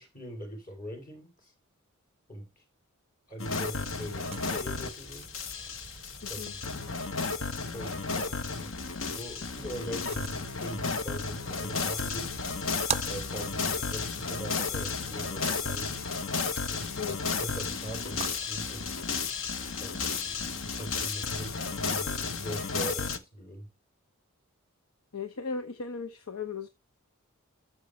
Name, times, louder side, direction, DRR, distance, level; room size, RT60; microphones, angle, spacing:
voice 1, 0.0-1.5 2.3-2.6 3.3-5.4 6.2-7.0 7.7-8.7 9.1-12.3 13.0-16.0 16.7-19.0 19.8-23.7, equal, 40° left, 3.3 m, -41 dB
sound 1, 3.4-23.2, left 4 dB, 60° left, 1.0 m, -33 dB
sound 2, 3.8-22.0, right 6 dB, 30° right, 0.5 m, -45 dB
voice 2, 6.2-6.5 16.9-17.2 25.1-26.7, left 5 dB, 85° left, 1.0 m, -36 dB
13.0 x 6.9 x 3.2 m
head